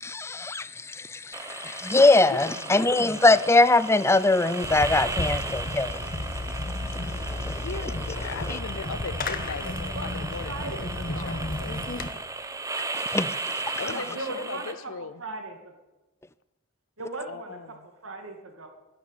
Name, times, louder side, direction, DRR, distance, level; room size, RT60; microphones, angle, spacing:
voice 1, 0.0-6.0 7.4-7.6 8.5-8.6 12.9-13.4, left 2 dB, 15° left, 0.5 m, -22 dB
sound 1, 1.3-14.7, right 3 dB, 15° right, 1.0 m, -36 dB
voice 2, 2.3-3.0 7.6-11.8 13.8-15.1 17.3-17.7, left 5 dB, 80° left, 0.6 m, -38 dB
Fireworks, 4.6-12.1, left 2 dB, 45° left, 1.2 m, -33 dB
voice 3, 9.9-11.5 13.9-15.7 17.0-18.7, right 3 dB, 85° right, 2.4 m, -38 dB
12.5 x 11.5 x 8.9 m
head